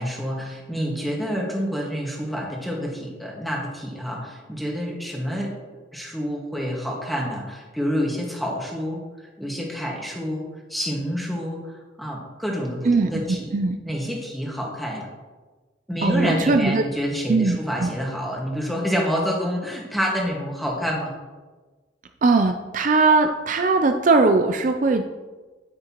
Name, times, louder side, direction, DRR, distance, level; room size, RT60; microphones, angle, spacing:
voice 1, 0.0-5.5 5.9-9.0 9.4-13.5 13.9-15.1 15.9-21.1, equal, ahead, -2 dB, 1.6 m, -28 dB
voice 2, 12.8-13.8 16.0-16.8 17.3-17.9 22.2-25.0, right 3 dB, 45° right, 6 dB, 0.4 m, -20 dB
9.5 x 9.4 x 3.0 m, 1.3 s
head